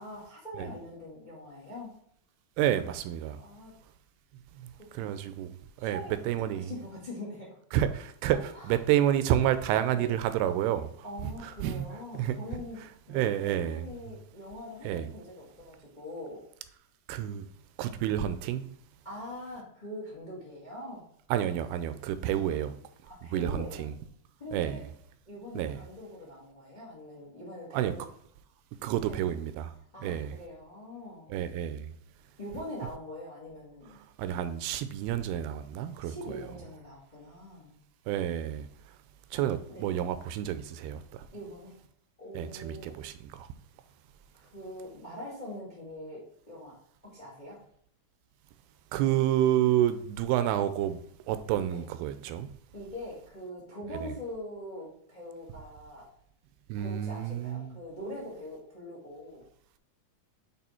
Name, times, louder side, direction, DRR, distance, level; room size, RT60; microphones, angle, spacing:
voice 1, 0.0-1.9 3.4-3.7 4.7-5.1 5.8-6.1 6.5-7.6 8.5-8.8 9.9-10.1 11.0-16.4 19.0-21.1 22.2-22.6 23.0-23.8 24.4-24.8 25.3-28.0 29.0-29.3 29.9-31.3 32.4-34.0 36.0-37.7 39.7-39.9 41.3-41.8 42.2-42.9 44.4-46.7 47.0-47.6 51.7-51.8 52.7-56.1 56.7-59.4, left 1 dB, 80° left, 0.4 m, -43 dB
voice 2, 2.6-3.4 4.9-5.5 5.8-6.0 6.2-6.7 7.7-8.4 8.7-10.9 11.4-11.9 12.1-12.4 13.1-13.9 14.8-15.1 17.1-17.4 17.8-18.7 21.3-22.7 23.3-23.9 24.5-24.9 25.6-25.8 27.7-27.9 28.8-29.7 30.0-30.4 31.3-31.9 34.2-36.1 38.1-38.7 39.3-41.0 42.4-43.5 48.9-51.0 51.3-52.5 54.0-54.1 56.7-57.8, right 11 dB, 80° right, 2.4 m, -29 dB
8.6 x 3.5 x 4.3 m
omnidirectional pair, 4.7 m